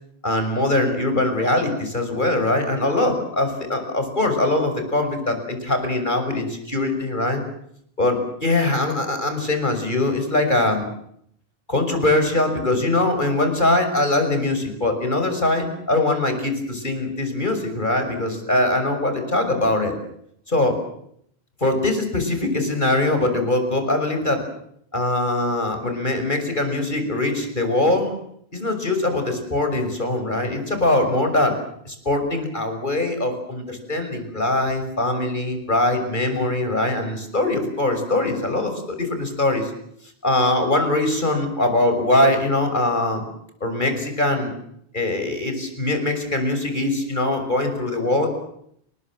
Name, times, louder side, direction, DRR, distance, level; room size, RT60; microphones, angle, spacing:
voice 1, 0.2-7.4 8.0-10.9 11.7-19.9 20.5-20.8 21.6-24.4 24.9-28.1 28.5-31.6 31.8-39.7 40.2-43.2 43.6-44.5 44.9-48.3, left 2 dB, 50° left, 6 dB, 6.6 m, -22 dB
30.0 x 21.0 x 7.7 m, 0.70 s
omnidirectional pair, 1.0 m